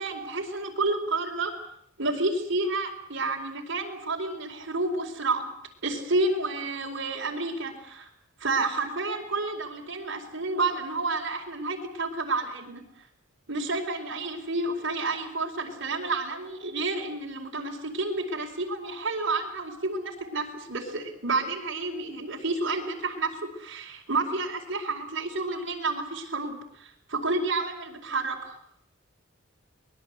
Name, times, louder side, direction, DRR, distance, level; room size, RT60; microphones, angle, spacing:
voice 1, 0.0-1.5 2.0-5.5 5.8-8.1 8.4-12.8 13.5-28.6, right 3 dB, 65° right, 0 dB, 4.6 m, -30 dB
24.0 x 20.5 x 8.2 m, 0.69 s
head